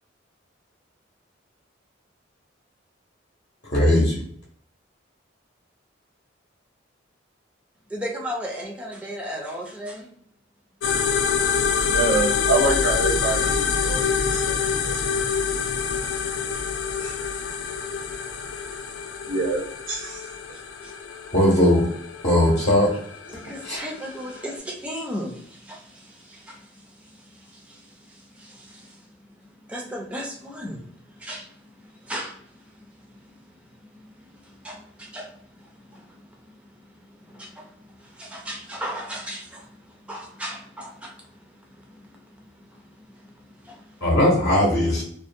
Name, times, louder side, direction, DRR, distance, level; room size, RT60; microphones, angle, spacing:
voice 1, 3.7-4.2 21.3-21.9 22.2-23.0 23.6-23.8 44.0-45.0, left 1 dB, 50° left, -4 dB, 0.7 m, -18 dB
voice 2, 7.9-10.1 20.1-20.2 20.8-20.9 23.3-29.0 29.7-30.8 31.1-31.5 32.0-32.4 33.1-33.4 33.9-36.1 36.5-36.6 37.0-41.3 41.7-42.5 42.7-42.8 43.1-43.2 43.5-44.1, equal, 5° right, 0 dB, 0.4 m, -36 dB
sound 1, 10.8-24.6, left 6 dB, 70° left, 0.3 m, -26 dB
voice 3, 11.7-15.0 17.0-17.1 19.3-19.6 19.9-20.2, right 3 dB, 70° right, -2 dB, 0.6 m, -26 dB
2.5 x 2.1 x 2.5 m, 0.63 s
head